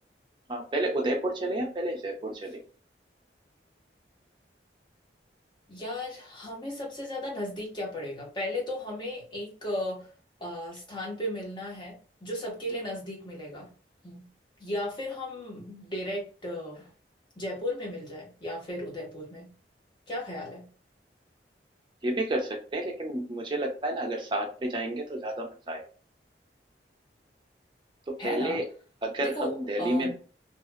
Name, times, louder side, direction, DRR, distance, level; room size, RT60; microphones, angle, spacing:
voice 1, 0.5-2.6 22.0-25.8 28.2-28.6 29.0-30.1, right 1 dB, 25° right, 2 dB, 0.5 m, -30 dB
voice 2, 5.7-10.1 10.4-13.7 14.0-14.3 14.6-16.9 17.4-19.5 20.1-20.7 28.2-28.6 29.2-29.5 29.8-30.1, left 1 dB, 25° left, -2 dB, 0.9 m, -35 dB
2.8 x 2.3 x 2.2 m, 0.38 s
head